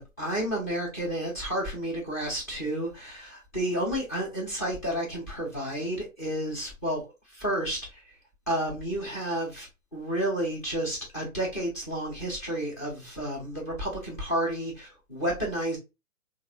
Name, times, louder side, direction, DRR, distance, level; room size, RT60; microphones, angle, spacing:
voice 1, 0.0-7.1 7.3-8.0 8.5-15.8, right 1 dB, 10° left, 0.5 m, -31 dB
3.2 x 2.4 x 2.5 m
hypercardioid pair, 140°, 43 cm